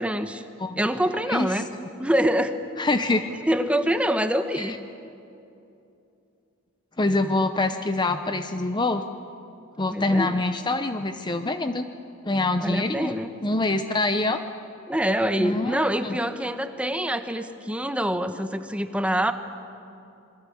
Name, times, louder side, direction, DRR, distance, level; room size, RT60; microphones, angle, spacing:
voice 1, 0.0-0.4 0.8-1.7 2.0-2.5 3.5-4.8 9.9-10.4 12.6-13.3 14.9-19.3, equal, 5° right, 8 dB, 1.0 m, -25 dB
voice 2, 0.6-0.9 1.3-1.6 2.8-3.2 4.6-4.8 7.0-9.0 9.8-11.9 12.2-13.1 13.4-14.4 15.4-16.2, left 2 dB, 20° left, 8 dB, 0.7 m, -25 dB
26.5 x 22.0 x 8.6 m, 2.7 s
head